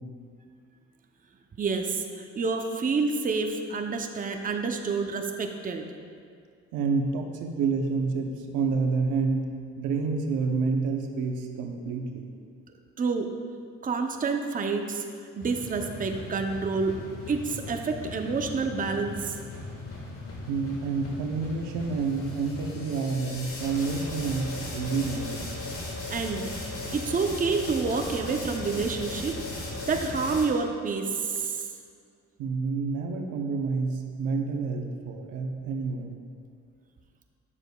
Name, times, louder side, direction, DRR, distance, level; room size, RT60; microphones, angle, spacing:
voice 1, 1.6-5.8 13.0-13.3 13.8-15.0 15.4-17.0 17.3-19.4 26.1-26.5 26.9-29.4 29.9-31.6, right 4 dB, 30° right, 4 dB, 0.6 m, -28 dB
voice 2, 6.7-12.3 20.5-25.5 32.4-36.1, right 4 dB, 85° right, 4 dB, 0.7 m, -29 dB
sound 1, 15.4-30.5, left 2 dB, 45° left, 1.6 m, -37 dB
9.8 x 6.8 x 2.3 m, 2.2 s
cardioid pair, 90°, 30 cm